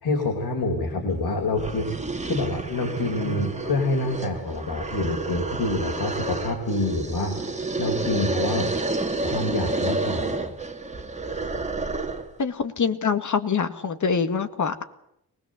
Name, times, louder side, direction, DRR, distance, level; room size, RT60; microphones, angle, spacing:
voice 1, 0.0-1.9 2.2-7.4 7.8-8.7 9.2-10.6, left 2 dB, 85° left, 3 dB, 4.3 m, -27 dB
sound 1, 1.1-1.2 1.5-12.3, right 3 dB, 20° right, 2.5 m, -30 dB
voice 2, 12.4-14.8, left 6 dB, 55° left, 9 dB, 2.0 m, -25 dB
23.5 x 20.0 x 7.7 m, 0.77 s
wide cardioid pair, 130°, 37 cm